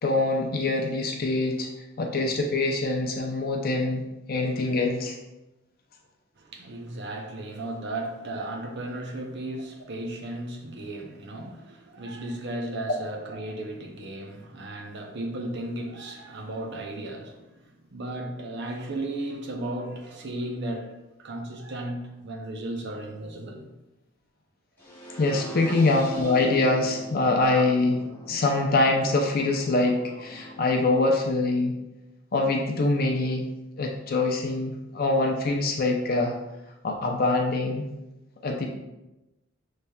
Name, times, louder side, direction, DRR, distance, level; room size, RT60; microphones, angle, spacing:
voice 1, 0.0-1.7 2.0-5.2 25.2-28.0 28.3-31.8 32.3-33.5 33.8-36.3 36.8-37.8 38.4-38.7, left 2 dB, 45° left, 0.5 m, -24 dB
voice 2, 6.4-17.5 17.9-20.9 21.2-23.7 25.6-25.8 27.5-27.6, right 1 dB, 55° right, 0.7 m, -35 dB
sound 1, 24.8-30.8, right 2 dB, 10° left, 0.9 m, -41 dB
6.8 x 3.2 x 2.3 m
head